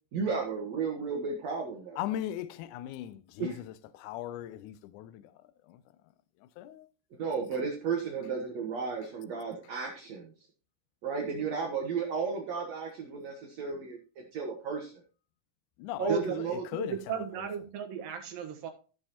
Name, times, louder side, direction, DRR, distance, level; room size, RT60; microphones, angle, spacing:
voice 1, 0.1-2.0 3.4-3.6 7.2-10.3 11.0-14.0 14.3-14.9 16.0-16.6, right 5 dB, 60° right, 2.3 m, -33 dB
voice 2, 2.0-5.2 5.7-5.8 6.6-6.9 15.8-17.1, left 12 dB, 75° left, 2.0 m, -38 dB
voice 3, 16.7-18.7, right 8 dB, 85° right, 3.1 m, -35 dB
14.5 x 6.7 x 2.9 m
omnidirectional pair, 3.9 m